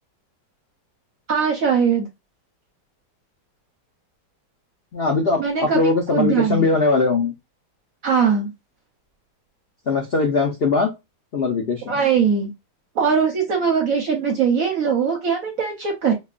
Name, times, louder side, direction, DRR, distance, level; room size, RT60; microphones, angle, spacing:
voice 1, 1.3-2.1 5.4-5.8 6.1-6.7 8.0-8.5 11.9-12.5 12.9-16.1, right 6 dB, 65° right, 0.9 m, -20 dB
voice 2, 4.9-7.3 9.9-10.9 11.3-12.0, left 3 dB, 75° left, 0.5 m, -20 dB
5.1 x 2.3 x 2.4 m
omnidirectional pair, 2.1 m